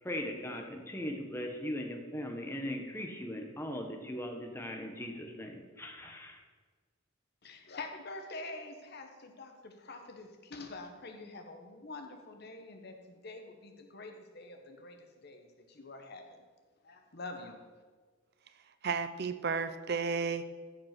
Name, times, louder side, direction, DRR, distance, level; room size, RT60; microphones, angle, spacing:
voice 1, 0.0-6.4, left 1 dB, 10° left, 3 dB, 1.3 m, -39 dB
voice 2, 7.4-16.4 16.8-17.6, left 2 dB, 50° left, 4 dB, 1.3 m, -46 dB
voice 3, 18.8-20.4, right 5 dB, 50° right, 11 dB, 0.6 m, -32 dB
14.0 x 5.4 x 6.1 m, 1.5 s
head